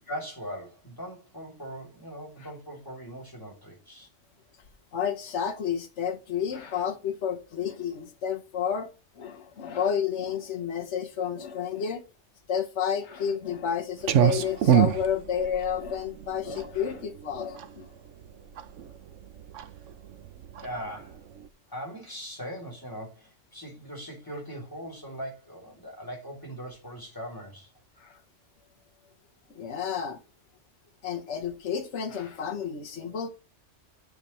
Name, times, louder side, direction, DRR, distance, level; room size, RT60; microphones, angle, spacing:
voice 1, 0.0-4.1 20.6-21.2 21.7-27.7, equal, 15° left, 3.2 m, -40 dB
voice 2, 4.9-8.9 9.2-12.0 12.5-17.9 28.0-28.2 29.5-30.2 31.0-33.3, left 8 dB, 65° left, 1.4 m, -31 dB
Clock, 14.0-21.5, right 9 dB, 75° right, 1.0 m, -27 dB
11.0 x 7.1 x 3.1 m
omnidirectional pair, 1.3 m